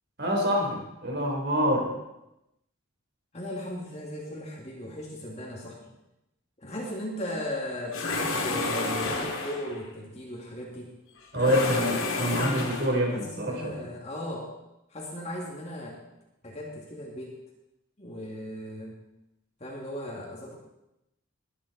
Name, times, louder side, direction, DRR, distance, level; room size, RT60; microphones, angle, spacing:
voice 1, 0.2-1.9 11.3-13.9, equal, 50° right, 0 dB, 4.0 m, -26 dB
voice 2, 3.3-5.8 6.6-10.9 11.4-12.7 13.1-14.5 14.9-16.0 16.4-17.4 18.0-19.0 19.6-20.5, left 1 dB, 30° left, -2 dB, 2.5 m, -37 dB
sound 1, 7.9-9.8 11.3-13.1, left 3 dB, 70° left, 2.4 m, -30 dB
20.5 x 10.0 x 4.3 m, 0.90 s
head